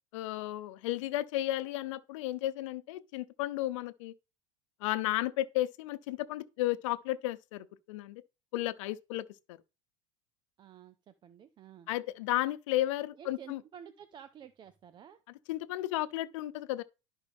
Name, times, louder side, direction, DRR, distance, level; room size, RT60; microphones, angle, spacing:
voice 1, 0.1-4.1 4.8-8.2 8.5-9.6 11.9-13.6 15.5-16.8, left 15 dB, 75° left, 0.7 m, -33 dB
voice 2, 10.6-11.9 13.2-15.2, right 9 dB, 30° right, 0.5 m, -51 dB
11.5 x 5.1 x 3.5 m
supercardioid pair, 130°, 16 cm